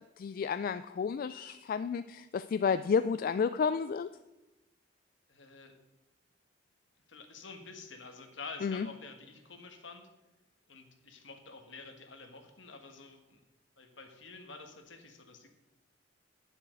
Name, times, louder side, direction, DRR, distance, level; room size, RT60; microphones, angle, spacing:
voice 1, 0.2-4.1 8.6-8.9, left 6 dB, 50° left, 12 dB, 0.3 m, -31 dB
voice 2, 5.3-5.7 7.1-10.0 10.7-13.4 13.8-15.5, left 4 dB, 70° left, 5 dB, 1.5 m, -49 dB
9.2 x 7.1 x 6.4 m, 1.0 s
head